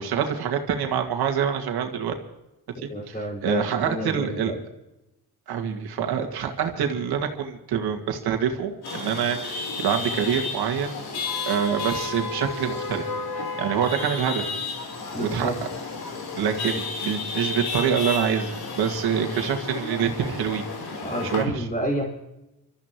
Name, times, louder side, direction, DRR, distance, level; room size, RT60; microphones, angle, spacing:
voice 1, 0.0-2.1 2.8-4.5 5.5-10.9 11.5-13.1 13.3-14.5 15.2-15.7 16.4-20.6 21.2-21.7, right 7 dB, 85° right, 4 dB, 2.2 m, -26 dB
voice 2, 2.8-4.6 15.1-15.6 16.7-16.8 21.0-22.1, equal, 20° left, -1 dB, 5.1 m, -30 dB
Chatter / Vehicle horn car horn honking / Traffic noise roadway noise, 8.8-21.4, left 4 dB, 80° left, 4.0 m, -32 dB
26.5 x 14.0 x 3.1 m, 0.94 s
cardioid pair, 100°, 37 cm